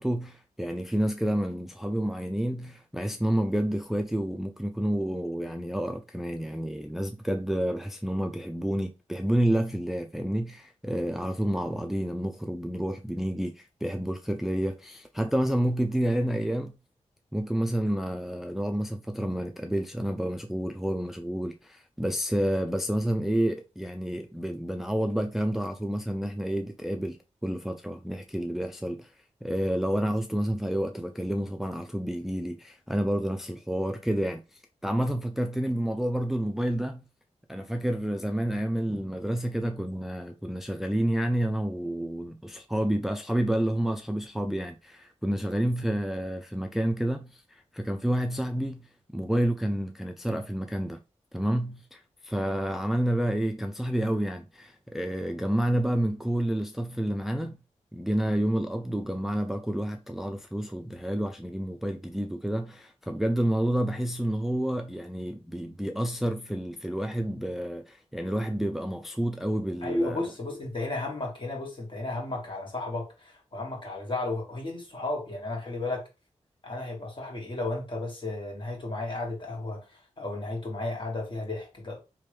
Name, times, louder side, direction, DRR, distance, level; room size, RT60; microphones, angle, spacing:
voice 1, 0.0-16.8 17.3-29.1 29.4-37.0 37.5-51.0 51.3-57.6 57.9-70.2, right 1 dB, ahead, 0.3 m, -29 dB
voice 2, 69.8-76.0 76.6-82.0, left 2 dB, 40° left, 1.7 m, -34 dB
3.2 x 2.9 x 3.2 m
cardioid pair, 55°, 12 cm